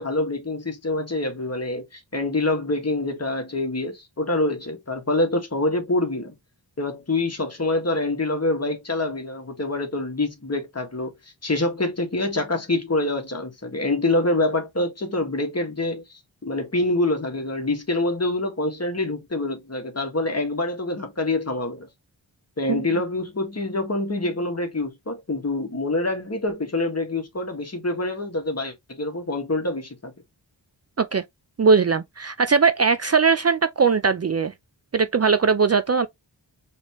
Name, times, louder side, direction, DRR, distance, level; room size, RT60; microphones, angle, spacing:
voice 1, 0.0-6.3 6.8-11.1 11.4-21.9 22.6-30.1, left 2 dB, 35° left, 1.6 m, -26 dB
voice 2, 31.6-34.5 34.9-36.1, right 5 dB, 35° right, 0.5 m, -20 dB
4.0 x 3.5 x 3.0 m
cardioid pair, 45°, 44 cm